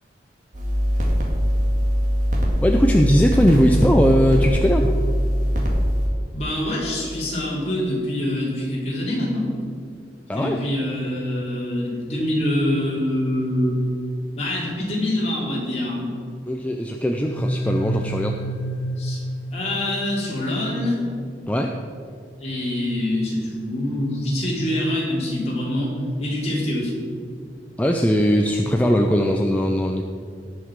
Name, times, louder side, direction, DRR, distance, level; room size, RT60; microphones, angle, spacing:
sound 1, 0.5-6.1, equal, 45° right, 1.9 m, -21 dB
voice 1, 2.6-5.0 10.3-10.6 16.5-18.4 21.5-21.7 27.8-30.0, equal, 10° left, 2 dB, 0.5 m, -19 dB
voice 2, 6.3-9.5 10.3-13.8 14.4-16.1 19.0-19.2 19.5-21.0 22.4-27.0, left 1 dB, 35° left, -5 dB, 3.2 m, -25 dB
sound 2, 17.2-20.0, right 1 dB, 80° right, 3.1 m, -28 dB
17.5 x 5.9 x 4.7 m, 2.3 s
head